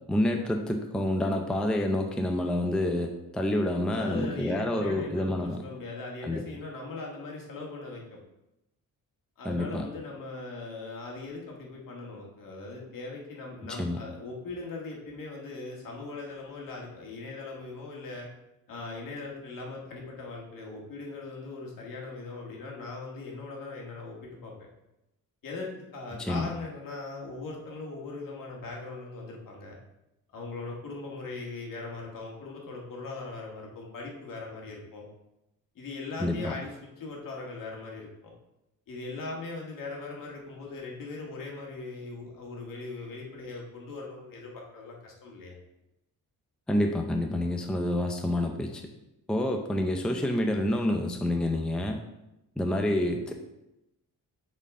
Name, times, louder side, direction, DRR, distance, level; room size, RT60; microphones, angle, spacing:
voice 1, 0.1-5.6 6.2-6.4 9.4-9.9 13.6-14.0 26.2-26.5 36.2-36.5 46.7-48.8 49.3-52.0 52.6-53.3, left 1 dB, ahead, 3 dB, 0.5 m, -28 dB
voice 2, 3.9-8.2 9.4-18.3 18.7-24.5 25.4-29.7 30.3-35.1 35.8-38.3 38.9-45.6, left 3 dB, 65° left, -1 dB, 1.9 m, -40 dB
8.7 x 4.3 x 3.7 m, 0.90 s
cardioid pair, 130°, 36 cm